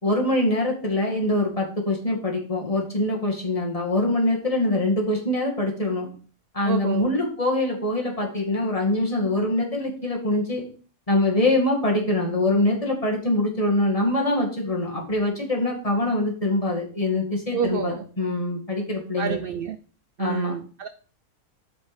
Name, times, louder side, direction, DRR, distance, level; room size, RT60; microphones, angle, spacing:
voice 1, 0.0-6.1 6.5-10.6 11.1-19.4 20.2-20.6, left 1 dB, 25° left, -1 dB, 2.2 m, -24 dB
voice 2, 6.6-7.1 17.5-18.0 19.2-19.8 20.2-20.9, right 8 dB, 65° right, 10 dB, 0.5 m, -28 dB
8.0 x 5.2 x 5.2 m, 0.41 s
omnidirectional pair, 1.5 m